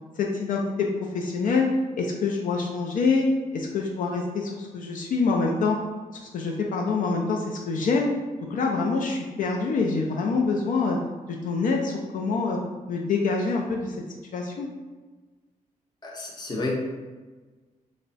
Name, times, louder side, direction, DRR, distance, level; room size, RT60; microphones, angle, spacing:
voice 1, 0.2-0.9 1.1-1.7 2.0-5.8 6.1-8.1 8.5-11.0 11.3-12.6 12.9-14.7, left 4 dB, 70° left, 0 dB, 0.4 m, -26 dB
voice 2, 16.0-16.7, left 2 dB, 30° left, -2 dB, 0.6 m, -31 dB
3.4 x 2.1 x 3.9 m, 1.3 s
wide cardioid pair, 155°, 14 cm